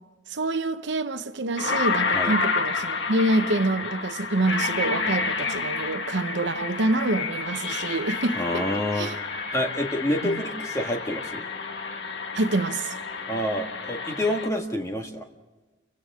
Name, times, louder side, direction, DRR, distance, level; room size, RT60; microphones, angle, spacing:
voice 1, 0.3-9.2 10.2-10.4 12.3-13.0, right 2 dB, 65° right, 0.9 m, -26 dB
sound 1, 0.9-1.0 1.6-14.5, left 4 dB, 65° left, 1.6 m, -30 dB
voice 2, 8.4-11.5 13.3-15.3, left 1 dB, 15° left, 1.8 m, -28 dB
30.0 x 24.5 x 3.7 m
head